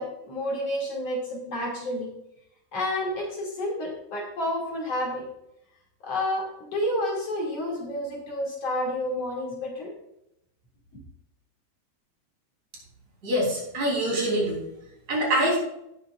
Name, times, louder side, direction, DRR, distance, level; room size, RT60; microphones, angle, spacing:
voice 1, 0.0-2.1 2.7-5.2 6.0-9.9, left 1 dB, 50° left, -2 dB, 3.4 m, -30 dB
voice 2, 13.2-14.6 15.1-15.6, right 1 dB, 60° right, -3 dB, 5.0 m, -24 dB
17.0 x 7.2 x 2.4 m, 0.80 s
omnidirectional pair, 3.6 m